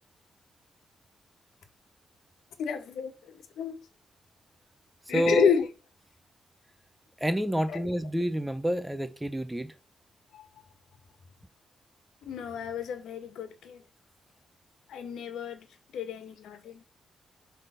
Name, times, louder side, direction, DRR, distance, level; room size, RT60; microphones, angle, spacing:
voice 1, 2.6-3.1 3.6-3.8 5.1-5.7 7.7-7.9 10.3-10.5 12.2-13.8 14.9-15.7 15.9-16.8, left 7 dB, 90° left, 1.4 m, -30 dB
voice 2, 5.1-5.5 7.2-9.7, equal, 5° right, 0.6 m, -28 dB
8.1 x 3.5 x 5.6 m
cardioid pair, 140°, 0 cm